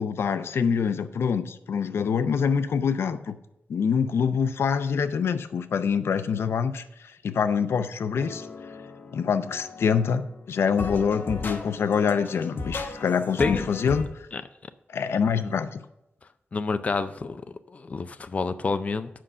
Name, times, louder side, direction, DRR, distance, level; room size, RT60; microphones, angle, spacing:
voice 1, 0.0-3.4 3.7-8.5 9.1-14.1 14.9-15.8, left 6 dB, 85° left, 11 dB, 0.5 m, -25 dB
sound 1, 8.1-10.4 10.8-14.0, left 3 dB, 55° left, 1.0 m, -36 dB
voice 2, 16.5-17.4 17.7-19.1, left 4 dB, 35° left, 10 dB, 0.4 m, -28 dB
7.6 x 5.6 x 6.5 m, 0.85 s
wide cardioid pair, 155°, 4 cm